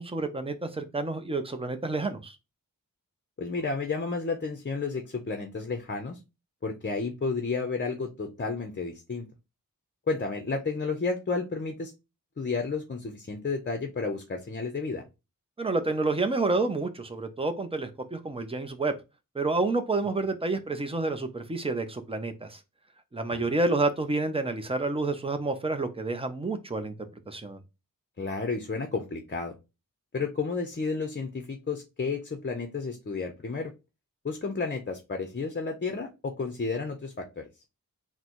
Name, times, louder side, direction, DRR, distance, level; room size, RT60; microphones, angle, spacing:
voice 1, 0.0-2.4 15.6-18.9 19.3-22.6 23.1-26.9 27.3-27.6, right 3 dB, 15° right, 8 dB, 0.6 m, -29 dB
voice 2, 3.4-6.2 6.6-9.3 10.1-11.9 12.4-15.0 23.3-23.4 28.2-29.6 30.1-33.7 34.2-37.4, left 4 dB, 35° left, 5 dB, 0.6 m, -32 dB
3.9 x 2.1 x 4.4 m, 0.25 s
wide cardioid pair, 110°, 34 cm